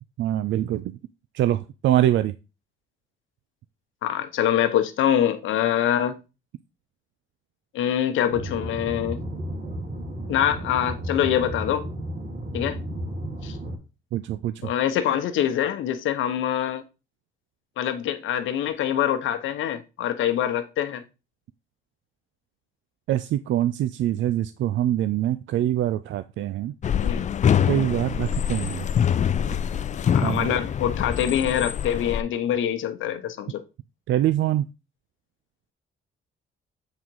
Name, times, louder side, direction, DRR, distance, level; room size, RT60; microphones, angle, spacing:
voice 1, 0.2-1.0 1.3-2.3 14.1-14.5 23.1-26.7 27.7-28.8 30.2-30.5 34.1-34.6, right 12 dB, 70° right, 0.4 m, -24 dB
voice 2, 4.0-6.2 7.7-9.2 10.3-11.9 12.5-12.8 13.4-13.6 14.6-16.8 17.8-21.0 27.0-27.3 30.1-33.6, left 10 dB, 80° left, 0.9 m, -24 dB
sound 1, 8.3-13.8, right 1 dB, 40° right, 2.0 m, -33 dB
sound 2, 26.8-32.2, left 8 dB, 40° left, 0.4 m, -24 dB
7.4 x 3.8 x 4.6 m
cardioid pair, 90°, 20 cm